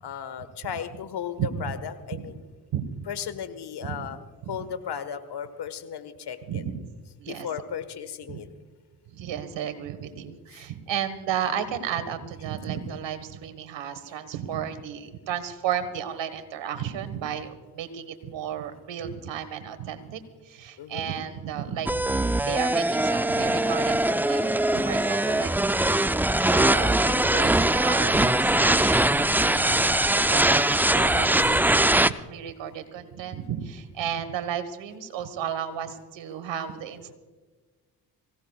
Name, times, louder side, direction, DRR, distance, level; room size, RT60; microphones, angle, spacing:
voice 1, 0.0-2.4 3.1-4.2 4.5-6.6 7.3-8.5 10.5-10.6 12.8-13.0 20.8-21.1 31.0-31.3, left 8 dB, 60° left, 11 dB, 1.5 m, -35 dB
voice 2, 1.4-1.8 2.1-2.2 2.7-2.9 3.8-4.0 4.4-4.6 6.5-6.8 7.2-7.5 8.3-8.4 9.1-25.5 26.5-30.0 30.3-37.2, right 9 dB, 75° right, 10 dB, 1.5 m, -33 dB
sound 1, 21.9-32.1, right 1 dB, 5° right, 0.4 m, -22 dB
25.0 x 17.0 x 2.4 m, 1.4 s
supercardioid pair, 45°, 44 cm